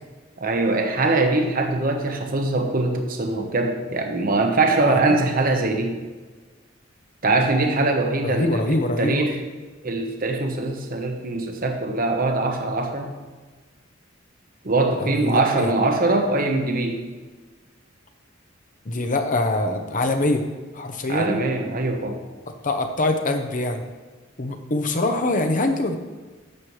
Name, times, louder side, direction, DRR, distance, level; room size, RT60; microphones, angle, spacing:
voice 1, 0.4-6.0 7.2-8.7 9.0-9.4 9.8-13.1 14.6-17.0 21.1-22.2, right 2 dB, 45° right, 4 dB, 1.1 m, -22 dB
voice 2, 4.6-5.2 8.2-9.2 14.9-15.7 18.8-20.4 20.7-21.4 22.5-23.8 24.4-26.0, left 2 dB, 40° left, 6 dB, 0.9 m, -24 dB
11.0 x 7.5 x 3.2 m, 1.3 s
head